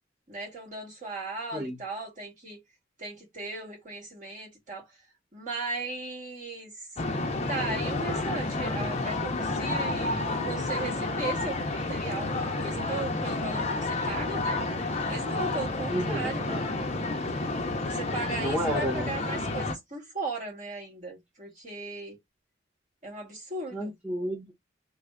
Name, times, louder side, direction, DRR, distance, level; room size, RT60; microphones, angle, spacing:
voice 1, 0.3-2.6 3.0-4.9 5.3-6.9 7.5-14.6 15.1-16.5 17.8-22.2 23.0-23.9, right 3 dB, 45° right, 1.8 m, -37 dB
sound 1, 7.0-19.8, left 2 dB, 35° left, 0.6 m, -30 dB
voice 2, 15.9-16.9 18.4-19.1 23.7-24.5, equal, 5° right, 0.9 m, -32 dB
3.2 x 2.1 x 3.6 m
head